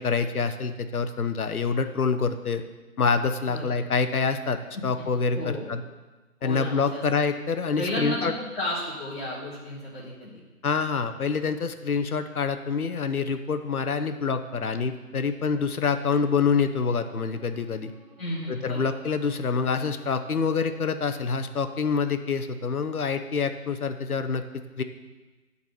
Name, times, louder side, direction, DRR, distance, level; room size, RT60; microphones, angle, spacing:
voice 1, 0.0-2.6 3.0-4.6 4.8-5.4 5.7-5.8 6.4-8.3 10.6-17.9 18.5-24.4 24.8-24.9, left 5 dB, 70° left, 8 dB, 0.8 m, -26 dB
voice 2, 5.4-5.7 6.4-7.0 7.7-10.3 18.2-18.9, left 1 dB, 45° left, -8 dB, 2.0 m, -33 dB
Bowed string instrument, 16.1-21.2, left 1 dB, 15° right, 1.3 m, -55 dB
9.4 x 4.1 x 6.9 m, 1.2 s
figure-of-eight pair, 165°, 45 cm